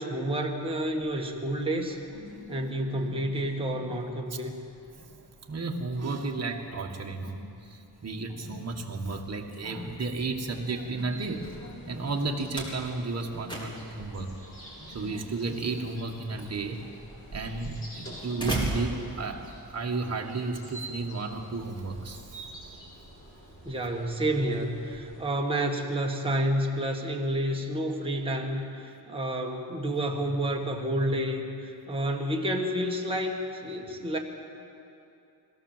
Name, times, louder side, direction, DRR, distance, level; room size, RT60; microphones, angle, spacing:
voice 1, 0.0-2.0 2.5-4.5 23.6-34.2, right 1 dB, 15° right, -1 dB, 1.9 m, -29 dB
sound 1, 0.6-17.6, left 1 dB, 70° left, 3.6 m, -50 dB
voice 2, 5.5-11.5 11.8-14.3 14.9-16.8 17.3-22.2, right 3 dB, 40° right, 1 dB, 1.8 m, -33 dB
Slam, 8.9-19.8, right 1 dB, 10° left, 3.6 m, -39 dB
sound 2, 11.1-25.2, right 1 dB, 30° left, 7.0 m, -48 dB
21.5 x 16.5 x 7.4 m, 2.7 s
wide cardioid pair, 150°, 40 cm